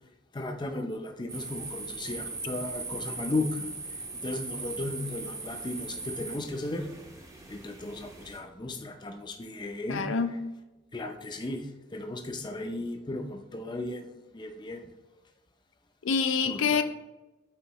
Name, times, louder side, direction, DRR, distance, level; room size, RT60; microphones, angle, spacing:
voice 1, 0.3-6.9 7.5-10.1 10.9-14.8 16.4-16.8, left 2 dB, 25° left, 4 dB, 0.5 m, -35 dB
sound 1, 1.3-8.4, right 3 dB, 15° right, 0.7 m, -39 dB
voice 2, 9.9-10.4 16.0-16.8, left 5 dB, 85° left, 9 dB, 0.5 m, -26 dB
9.0 x 3.8 x 3.0 m, 1.0 s
head